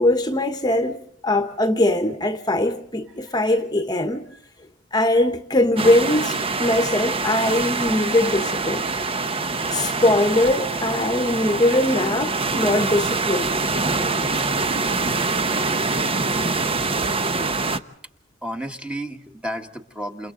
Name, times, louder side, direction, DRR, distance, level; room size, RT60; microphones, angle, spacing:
voice 1, 0.0-4.3 4.9-8.9 9.7-13.5, left 1 dB, 20° left, 1.2 m, -21 dB
sound 1, 5.8-17.8, right 3 dB, 25° right, 1.0 m, -24 dB
voice 2, 18.4-20.3, equal, 5° right, 1.5 m, -32 dB
29.5 x 29.0 x 3.9 m
head